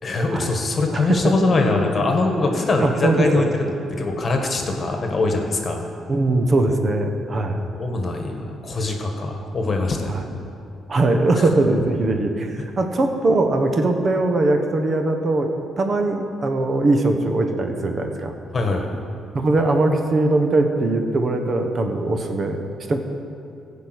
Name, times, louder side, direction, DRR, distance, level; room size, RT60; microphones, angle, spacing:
voice 1, 0.0-3.7 4.0-5.8 7.7-10.1 11.4-11.5 12.6-12.7 18.5-18.9, left 3 dB, 40° left, 3 dB, 1.6 m, -22 dB
voice 2, 2.5-3.5 6.1-7.6 10.1-10.2 10.9-15.5 15.8-18.3 19.3-22.6 22.9-23.0, right 2 dB, 40° right, 5 dB, 1.3 m, -21 dB
15.0 x 5.4 x 8.2 m, 2.6 s
cardioid pair, 90°, 0 cm